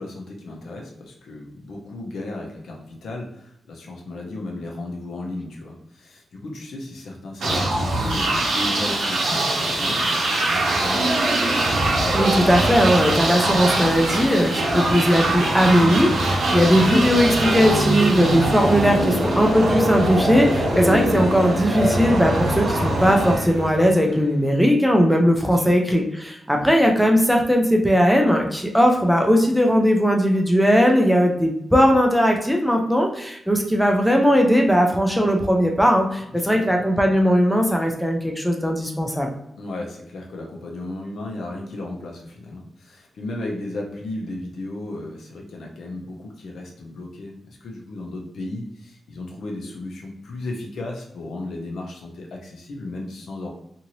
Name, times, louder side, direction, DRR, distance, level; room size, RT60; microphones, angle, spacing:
voice 1, 0.0-11.2 25.4-25.7 36.3-36.8 39.6-53.5, left 2 dB, 80° left, 0 dB, 0.7 m, -35 dB
sound 1, 7.4-24.1, right 1 dB, 85° right, 0.8 m, -22 dB
voice 2, 12.1-39.3, equal, ahead, 1 dB, 0.4 m, -18 dB
2.7 x 2.6 x 2.9 m, 0.76 s
wide cardioid pair, 175°, 0 cm